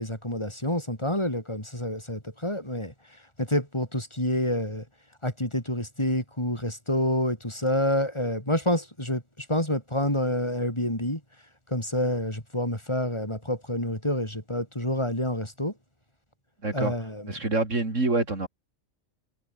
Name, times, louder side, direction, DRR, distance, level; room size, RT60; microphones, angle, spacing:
voice 1, 0.0-2.9 3.4-4.8 5.2-11.2 11.7-15.7 16.7-17.3, left 1 dB, 20° left, 5.5 m, -28 dB
voice 2, 16.6-16.9 17.3-18.5, right 2 dB, 75° right, 4.4 m, -26 dB
omnidirectional pair, 1.3 m